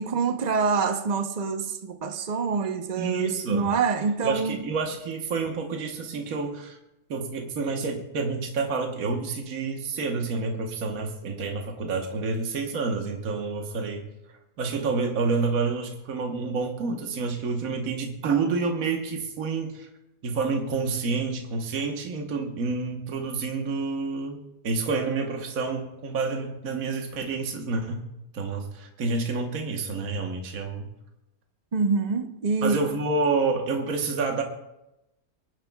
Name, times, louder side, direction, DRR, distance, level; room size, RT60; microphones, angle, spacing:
voice 1, 0.0-4.6 31.7-32.8, right 5 dB, 35° right, 0.7 m, -26 dB
voice 2, 3.0-3.7 4.2-6.8 7.1-14.1 14.6-19.9 20.2-28.1 28.3-30.9 32.6-34.4, right 4 dB, 65° right, 1.6 m, -28 dB
24.5 x 11.0 x 2.3 m
omnidirectional pair, 1.7 m